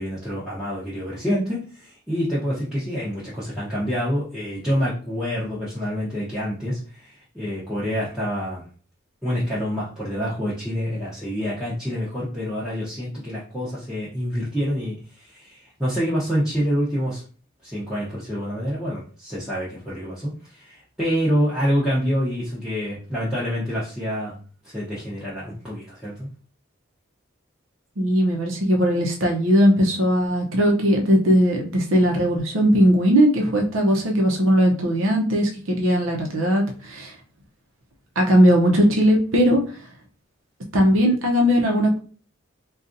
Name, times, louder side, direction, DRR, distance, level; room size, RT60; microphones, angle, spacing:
voice 1, 0.0-8.6 9.2-17.2 17.6-24.3 24.6-26.3, equal, 5° right, -10 dB, 0.8 m, -27 dB
voice 2, 28.0-37.1 38.2-39.6 40.7-42.0, equal, 75° right, 1 dB, 0.7 m, -19 dB
3.9 x 2.4 x 2.6 m, 0.40 s
head